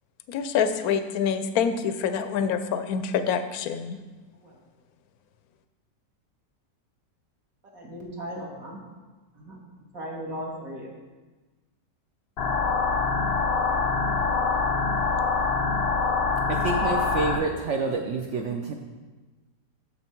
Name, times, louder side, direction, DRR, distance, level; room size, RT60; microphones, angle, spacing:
voice 1, 0.3-4.0, left 7 dB, 70° left, 9 dB, 0.9 m, -26 dB
voice 2, 7.7-8.8 9.4-9.6 9.9-10.9, equal, 55° right, -2 dB, 1.9 m, -37 dB
sound 1, 12.4-17.4, left 4 dB, 90° left, 0.5 m, -24 dB
voice 3, 16.5-18.7, right 4 dB, 70° right, 3 dB, 0.6 m, -28 dB
7.1 x 6.8 x 4.4 m, 1.2 s
omnidirectional pair, 1.9 m